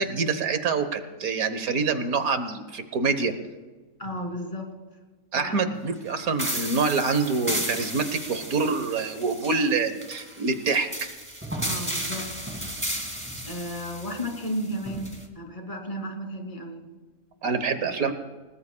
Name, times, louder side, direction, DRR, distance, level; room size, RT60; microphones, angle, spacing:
voice 1, 0.0-3.3 5.3-11.1 17.4-18.1, right 4 dB, 75° right, 9 dB, 1.6 m, -26 dB
voice 2, 4.0-4.7 5.3-5.6 11.6-12.3 13.5-16.9 18.0-18.1, equal, 25° left, 1 dB, 2.9 m, -33 dB
sound 1, 6.4-15.2, right 1 dB, 10° right, 2.0 m, -34 dB
29.0 x 19.0 x 2.3 m, 1.3 s
omnidirectional pair, 1.5 m